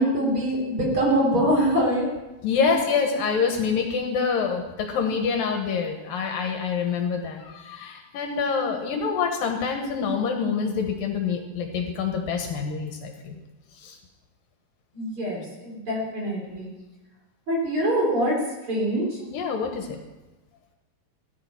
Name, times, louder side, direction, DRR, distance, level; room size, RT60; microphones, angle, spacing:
voice 1, 0.0-2.1 14.9-16.7 17.5-18.3 18.7-19.2, right 1 dB, 35° right, -2 dB, 4.4 m, -24 dB
voice 2, 2.4-13.4 13.8-14.0 19.3-20.0, left 5 dB, 70° left, 4 dB, 3.0 m, -26 dB
17.0 x 11.5 x 5.9 m, 1.1 s
omnidirectional pair, 4.4 m